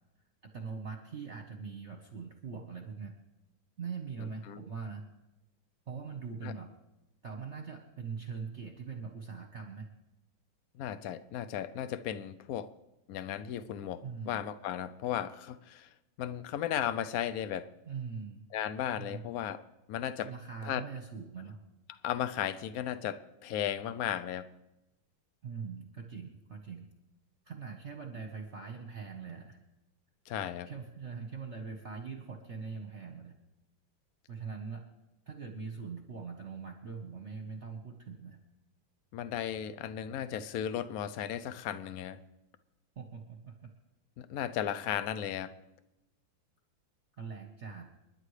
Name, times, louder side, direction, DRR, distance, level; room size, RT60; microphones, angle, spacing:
voice 1, 0.4-3.1 3.8-5.0 5.9-6.7 7.2-9.9 14.0-14.5 17.8-18.4 18.9-19.3 20.2-21.6 25.4-26.9 27.4-29.6 30.6-33.4 34.3-34.8 35.3-38.4 43.0-43.7 47.2-47.9, right 5 dB, 40° right, 3 dB, 1.3 m, -42 dB
voice 2, 4.2-4.6 6.4-6.5 10.8-12.7 13.1-15.9 16.2-17.7 18.5-19.6 19.9-20.3 20.7-20.8 22.0-24.5 30.3-30.7 39.1-42.2 44.2-45.5, left 10 dB, 75° left, 14 dB, 0.8 m, -35 dB
29.5 x 10.5 x 3.3 m, 0.95 s
omnidirectional pair, 2.2 m